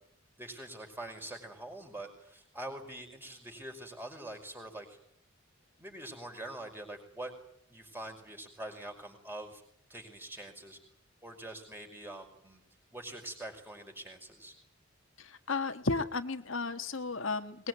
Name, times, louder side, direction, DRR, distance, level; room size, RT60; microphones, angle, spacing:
voice 1, 0.4-5.0 5.8-7.3 7.7-9.6 9.9-10.8 11.2-12.6 12.9-14.5, right 1 dB, 10° right, 4 dB, 5.4 m, -44 dB
voice 2, 15.5-17.7, left 3 dB, 70° left, 8 dB, 1.6 m, -33 dB
22.0 x 21.5 x 9.5 m, 0.69 s
head